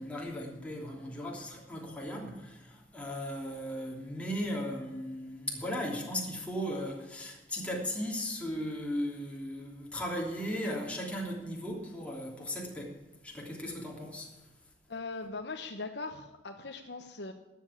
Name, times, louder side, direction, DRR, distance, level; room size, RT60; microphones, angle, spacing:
voice 1, 0.0-14.3, equal, 5° left, -2 dB, 3.0 m, -37 dB
voice 2, 14.9-17.3, left 3 dB, 70° left, 4 dB, 1.0 m, -40 dB
12.5 x 8.0 x 9.8 m, 1.0 s
head